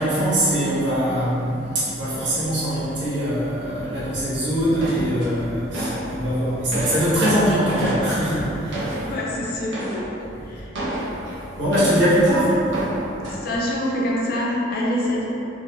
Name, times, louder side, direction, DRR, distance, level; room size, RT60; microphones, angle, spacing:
voice 1, 0.0-9.0 11.2-12.6, equal, 75° right, -11 dB, 1.5 m, -22 dB
sound 1, 4.8-6.1 6.5-9.3 9.7-10.1 10.7-12.3 12.7-13.4, right 1 dB, 90° right, 0.8 m, -29 dB
voice 2, 9.0-10.0 10.5-10.7 12.7-13.0 13.2-15.3, left 1 dB, 55° left, -3 dB, 0.6 m, -26 dB
4.0 x 2.8 x 2.6 m, 2.9 s
head